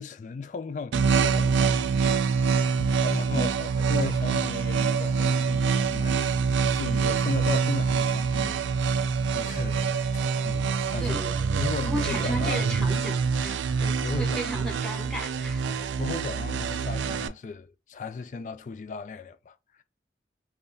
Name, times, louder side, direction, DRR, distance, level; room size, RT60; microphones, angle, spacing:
voice 1, 0.0-2.5 2.8-9.9 10.1-11.2 11.6-12.7 13.8-14.6 15.7-19.8, left 4 dB, 45° left, 0.3 m, -37 dB
sound 1, 0.9-17.3, right 5 dB, 85° right, 0.3 m, -25 dB
voice 2, 11.0-11.3 11.8-13.6 14.0-15.7, right 1 dB, 5° left, 1.0 m, -34 dB
3.4 x 2.3 x 2.6 m
head